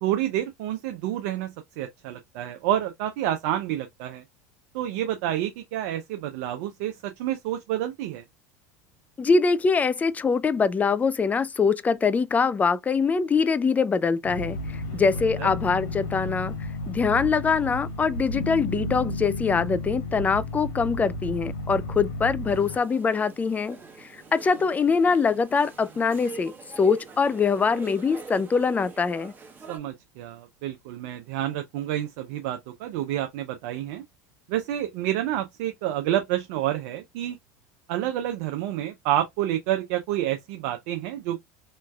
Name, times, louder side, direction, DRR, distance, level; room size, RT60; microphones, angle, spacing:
voice 1, 0.0-4.2 4.7-8.2 14.9-15.0 15.4-15.5 29.7-34.0 34.5-37.4 37.9-41.4, right 12 dB, 70° right, 0.5 m, -29 dB
voice 2, 9.2-16.5 16.9-29.3, left 5 dB, 20° left, 0.3 m, -23 dB
sound 1, 14.2-22.8, left 6 dB, 90° left, 0.6 m, -35 dB
Aircraft, 14.3-22.6, right 2 dB, 70° left, 1.5 m, -36 dB
sound 2, 22.5-29.8, right 5 dB, 20° right, 1.3 m, -43 dB
3.1 x 3.1 x 2.2 m
hypercardioid pair, 95°, 9 cm